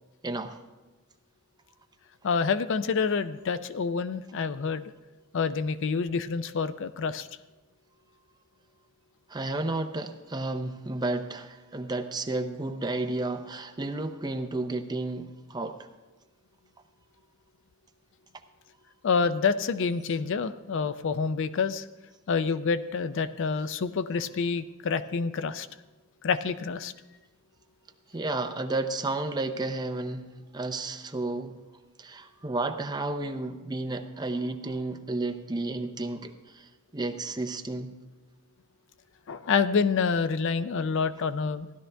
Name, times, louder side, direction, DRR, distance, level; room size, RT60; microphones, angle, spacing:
voice 1, 0.2-0.6 9.3-15.9 28.1-30.3 30.5-31.6 32.0-37.9, right 2 dB, 20° right, 7 dB, 0.6 m, -32 dB
voice 2, 2.2-4.9 5.3-7.3 19.0-21.9 22.3-25.7 26.2-26.9 39.3-41.7, left 5 dB, 60° left, 13 dB, 0.4 m, -27 dB
15.5 x 11.5 x 3.4 m, 1.2 s
head